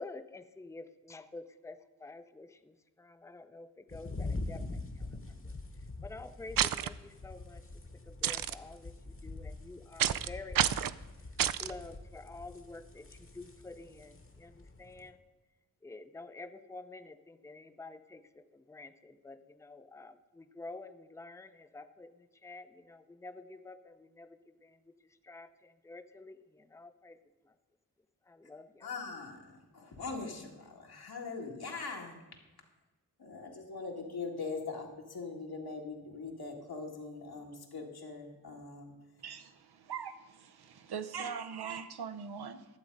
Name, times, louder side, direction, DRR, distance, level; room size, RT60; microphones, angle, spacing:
voice 1, 0.0-5.5 6.0-7.7 8.1-10.9 11.6-15.2 15.8-27.2 27.4-27.5 28.3-28.9, left 3 dB, 10° left, 10 dB, 0.6 m, -49 dB
sound 1, 3.9-15.1, left 2 dB, 35° left, 1.2 m, -44 dB
sound 2, 6.6-6.9 8.2-8.5 10.0-10.3 10.5-10.9 11.4-11.7, right 10 dB, 65° right, 0.5 m, -29 dB
voice 2, 28.8-32.2 33.2-38.9, left 4 dB, 75° left, 0 dB, 1.9 m, -42 dB
voice 3, 39.2-42.6, right 7 dB, 85° right, 9 dB, 0.8 m, -41 dB
11.5 x 7.3 x 5.3 m, 1.2 s
cardioid pair, 55°, 38 cm